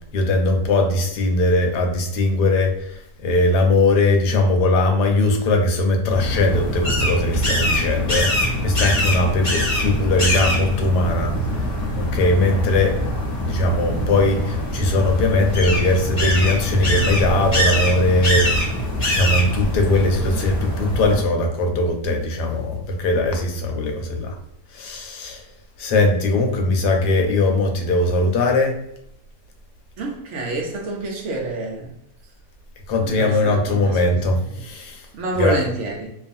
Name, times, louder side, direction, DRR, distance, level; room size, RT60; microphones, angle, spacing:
voice 1, 0.1-11.7 12.0-13.0 13.4-18.5 19.1-24.4 24.7-25.4 25.8-28.8 32.9-35.0 35.3-35.6, left 2 dB, 85° left, 3 dB, 1.2 m, -20 dB
sound 1, 6.1-21.2, left 1 dB, 35° left, 0.9 m, -23 dB
voice 2, 30.0-31.9 33.0-34.3 35.1-36.1, right 2 dB, 75° right, 0 dB, 0.6 m, -27 dB
2.6 x 2.3 x 2.5 m, 0.76 s
omnidirectional pair, 1.7 m